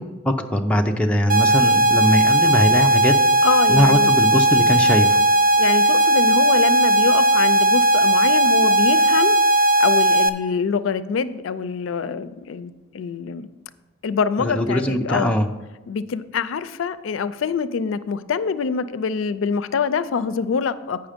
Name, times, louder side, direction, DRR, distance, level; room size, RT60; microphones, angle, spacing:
voice 1, 0.0-3.1 3.7-5.2 14.4-15.5, left 1 dB, 5° left, 2 dB, 0.5 m, -21 dB
sound 1, 1.3-10.3, right 1 dB, 45° right, 0.5 m, -17 dB
voice 2, 3.4-4.1 5.6-9.4 9.8-13.5 14.0-15.4 15.9-21.0, left 5 dB, 90° left, 14 dB, 0.4 m, -25 dB
8.8 x 5.6 x 5.1 m, 1.1 s
head